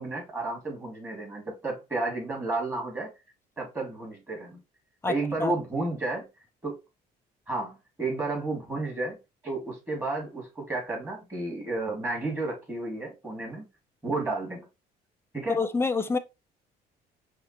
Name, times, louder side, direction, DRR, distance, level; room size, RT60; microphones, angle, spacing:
voice 1, 0.0-3.1 3.6-4.6 5.0-6.3 6.6-6.8 7.5-9.1 9.4-13.6 14.0-14.7 15.3-15.6, right 2 dB, 15° right, 2.6 m, -32 dB
voice 2, 5.0-5.5 15.5-16.2, left 4 dB, 15° left, 0.5 m, -27 dB
5.5 x 2.5 x 3.0 m
cardioid pair, 110°, 17 cm